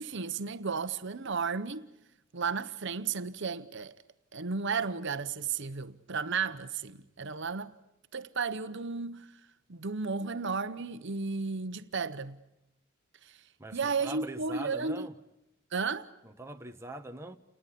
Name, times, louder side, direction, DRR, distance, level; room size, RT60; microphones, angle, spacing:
voice 1, 0.0-1.9 2.3-3.9 4.3-7.7 8.1-9.3 9.7-12.4 13.2-13.4 13.7-15.1 15.7-16.1, right 5 dB, 60° right, 1.0 m, -33 dB
voice 2, 13.6-15.1 16.2-17.4, right 2 dB, 15° right, 1.1 m, -43 dB
29.5 x 20.0 x 8.5 m
head